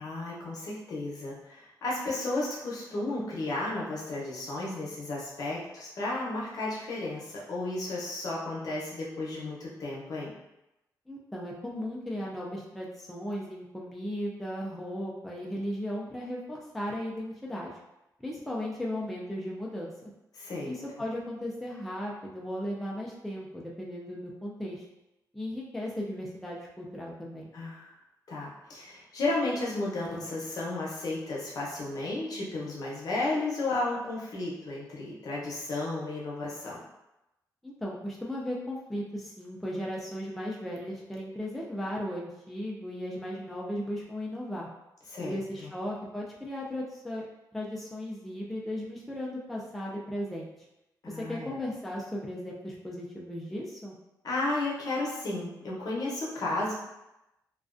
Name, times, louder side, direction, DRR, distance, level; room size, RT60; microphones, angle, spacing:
voice 1, 0.0-10.3 20.3-20.7 27.5-27.9 28.3-36.8 45.1-45.7 51.0-51.6 54.2-56.7, left 2 dB, 60° left, -4 dB, 0.7 m, -33 dB
voice 2, 11.1-17.7 18.2-20.1 20.6-24.8 25.3-27.5 37.6-44.7 45.2-47.3 47.5-50.5 51.0-53.9, equal, ahead, -4 dB, 0.3 m, -36 dB
2.3 x 2.2 x 2.4 m, 0.92 s
cardioid pair, 120°, 7 cm